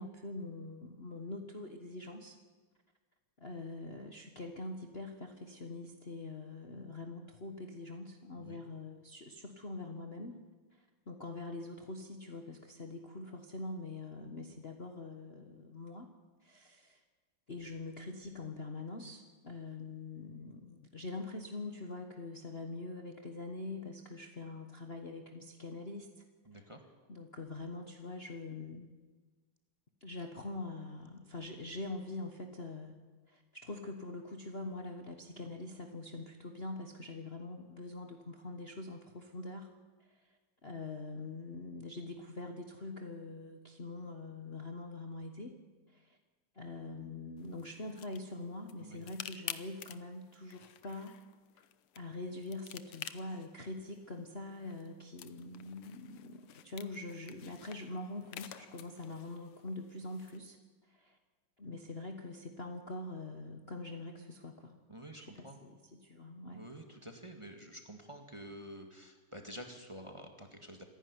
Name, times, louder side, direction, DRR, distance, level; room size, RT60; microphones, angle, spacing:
voice 1, 0.0-2.4 3.4-10.4 10.7-16.1 16.4-17.0 17.5-26.1 26.5-28.9 30.0-33.0 33.3-39.7 40.0-45.5 45.9-46.2 46.5-51.2 51.9-60.6 60.9-61.2 61.6-64.7 65.2-66.6, left 2 dB, 35° left, 4 dB, 1.3 m, -44 dB
voice 2, 26.5-26.8 48.8-49.0 64.9-65.6 66.5-70.8, equal, 15° right, 4 dB, 1.8 m, -49 dB
sound 1, 47.4-60.4, left 11 dB, 85° left, 1.8 m, -51 dB
26.0 x 11.0 x 9.7 m, 1.3 s
omnidirectional pair, 2.4 m